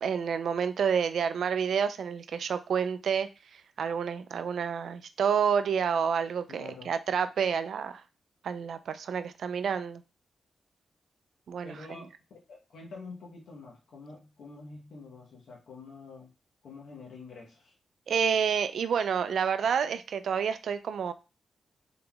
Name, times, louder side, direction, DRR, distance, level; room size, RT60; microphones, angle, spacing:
voice 1, 0.0-8.0 8.4-10.0 11.5-11.7 18.1-21.1, right 7 dB, 75° right, 11 dB, 0.4 m, -29 dB
voice 2, 6.5-6.9 11.6-12.2 12.5-16.3 16.6-17.7, left 4 dB, 85° left, -2 dB, 0.9 m, -47 dB
3.8 x 3.6 x 2.3 m, 0.29 s
wide cardioid pair, 120°, 0 cm